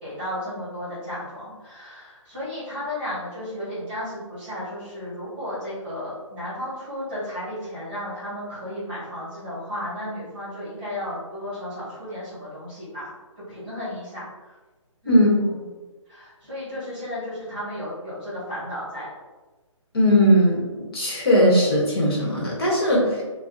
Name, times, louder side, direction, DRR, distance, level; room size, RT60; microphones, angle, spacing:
voice 1, 0.0-13.1 13.5-14.5 15.0-15.6 16.1-19.1, left 1 dB, 20° right, -11 dB, 1.2 m, -34 dB
voice 2, 19.9-23.2, equal, 50° left, -4 dB, 1.0 m, -19 dB
2.5 x 2.0 x 3.6 m, 1.2 s
hypercardioid pair, 180°, 17 cm